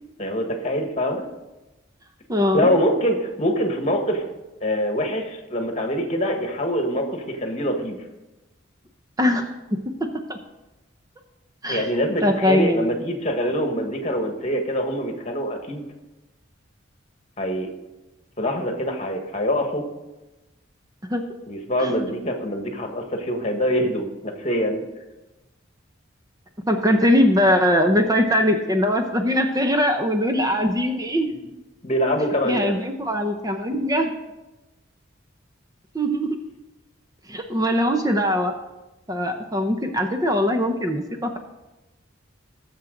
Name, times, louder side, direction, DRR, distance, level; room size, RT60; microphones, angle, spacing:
voice 1, 0.2-1.2 2.5-4.2 4.6-8.0 11.7-15.8 17.4-17.7 18.4-19.8 21.5-24.8 31.8-32.7, equal, 35° left, 4 dB, 1.5 m, -24 dB
voice 2, 2.3-2.7 9.2-9.5 10.0-10.4 11.6-11.9 12.2-12.9 21.1-21.4 21.8-21.9 26.7-31.3 32.4-34.1 35.9-36.4 37.3-38.5 39.1-41.4, equal, 20° right, 4 dB, 0.7 m, -21 dB
19.0 x 7.2 x 3.9 m, 1.1 s
head